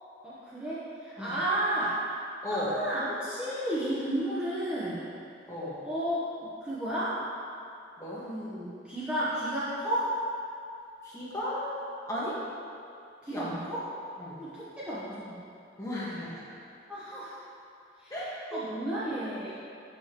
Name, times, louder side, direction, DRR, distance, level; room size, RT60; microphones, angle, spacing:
voice 1, 0.2-2.0 2.5-5.0 5.8-7.2 8.2-10.1 13.2-13.9 14.4-15.4 16.9-17.4 18.0-19.5, right 1 dB, 5° right, -11 dB, 1.0 m, -32 dB
voice 2, 11.1-11.8 12.1-12.3 13.3-13.4 14.2-14.3 15.8-16.3 18.1-18.3 18.5-18.6, left 1 dB, 15° left, -8 dB, 1.5 m, -34 dB
12.5 x 5.1 x 3.0 m, 2.6 s
head